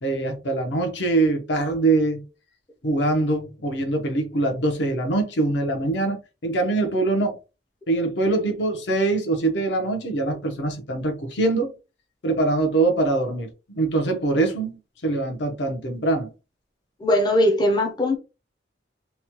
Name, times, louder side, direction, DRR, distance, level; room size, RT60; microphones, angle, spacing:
voice 1, 0.0-2.2 2.8-7.4 7.9-11.7 12.2-16.3, right 2 dB, 75° left, 0.8 m, -23 dB
voice 2, 17.0-18.2, left 1 dB, 25° left, 0.4 m, -20 dB
3.0 x 2.2 x 2.9 m
head